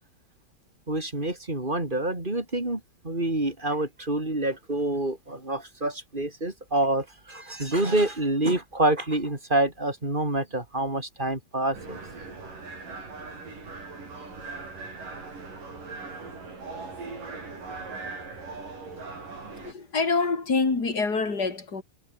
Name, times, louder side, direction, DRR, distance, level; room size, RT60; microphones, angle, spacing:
voice 1, 0.9-12.0, right 1 dB, 10° right, 4.0 m, -27 dB
sound 1, 11.7-19.7, right 4 dB, 55° right, 9.0 m, -40 dB
voice 2, 19.5-21.8, left 4 dB, 25° left, 4.2 m, -26 dB
omnidirectional pair, 4.5 m